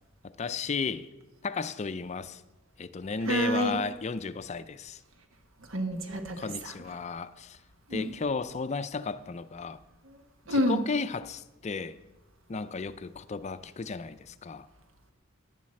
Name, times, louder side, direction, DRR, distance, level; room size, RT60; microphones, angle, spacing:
voice 1, 0.4-1.1 1.4-2.4 2.8-5.0 6.4-7.6 7.9-9.8 10.5-12.0 12.5-14.7, left 4 dB, 35° left, 0.4 m, -34 dB
voice 2, 3.2-3.8 5.7-6.7 7.9-8.1 10.0-10.2 10.5-10.8, equal, 85° right, 1.4 m, -29 dB
10.5 x 7.4 x 7.6 m
head